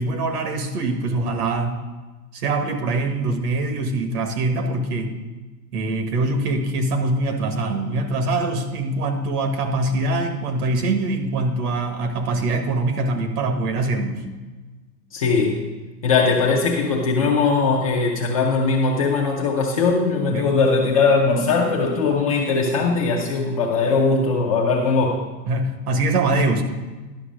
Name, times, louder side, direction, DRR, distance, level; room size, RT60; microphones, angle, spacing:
voice 1, 0.0-1.8 2.3-5.1 5.7-14.2 20.3-20.5 25.5-26.6, right 2 dB, 65° right, 6 dB, 1.5 m, -23 dB
voice 2, 15.1-15.6 16.0-25.2, left 4 dB, 25° left, -1 dB, 0.4 m, -20 dB
11.5 x 5.9 x 5.0 m, 1.2 s
supercardioid pair, 155°, 49 cm